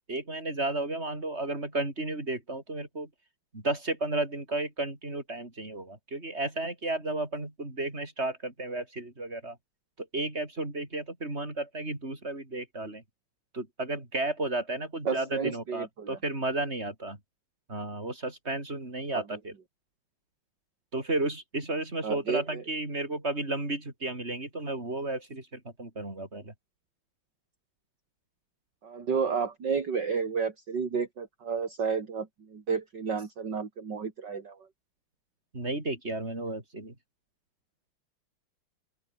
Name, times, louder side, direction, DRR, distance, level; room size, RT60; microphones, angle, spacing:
voice 1, 0.1-3.1 3.5-9.6 10.0-13.0 13.5-17.2 17.7-19.5 20.9-26.5 35.5-36.9, right 2 dB, 30° right, 6.0 m, -33 dB
voice 2, 15.0-16.2 19.1-19.4 22.0-22.6 28.8-34.6, right 5 dB, 55° right, 3.2 m, -31 dB
open air
omnidirectional pair, 2.4 m